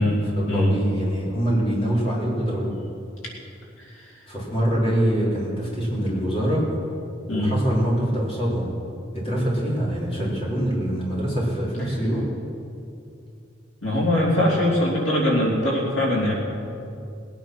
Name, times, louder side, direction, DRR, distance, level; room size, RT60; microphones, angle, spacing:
voice 1, 0.0-2.7 4.3-6.6 7.3-8.7 9.1-12.3, equal, 30° left, -5 dB, 3.6 m, -24 dB
voice 2, 3.8-4.1 7.3-7.5 13.8-16.3, left 1 dB, 90° left, -3 dB, 3.2 m, -22 dB
20.5 x 9.1 x 6.2 m, 2.6 s
head